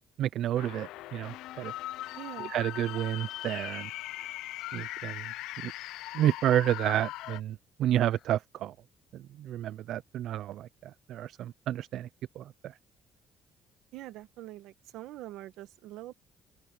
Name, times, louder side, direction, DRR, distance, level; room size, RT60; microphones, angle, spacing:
voice 1, 0.2-1.7 2.4-3.9 4.7-5.3 5.6-5.7 6.1-8.7 9.1-12.1 12.4-12.7, right 12 dB, 65° right, 0.4 m, -30 dB
sound 1, 0.6-7.4, left 16 dB, 85° left, 0.4 m, -40 dB
voice 2, 2.1-2.5 13.9-16.1, right 16 dB, 85° right, 1.5 m, -44 dB
sound 2, 3.3-3.8 4.5-5.0 5.9-6.1 6.6-7.0 7.8-8.3, left 9 dB, 55° left, 4.8 m, -64 dB
open air
cardioid pair, 120°, 0 cm